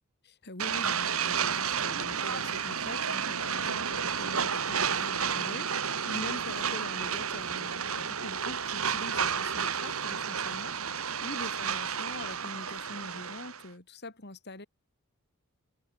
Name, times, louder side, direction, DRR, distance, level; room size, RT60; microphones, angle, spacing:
voice 1, 0.2-14.7, left 1 dB, 50° left, 5.0 m, -44 dB
sound 1, 0.6-13.6, right 7 dB, 75° right, 2.6 m, -31 dB
head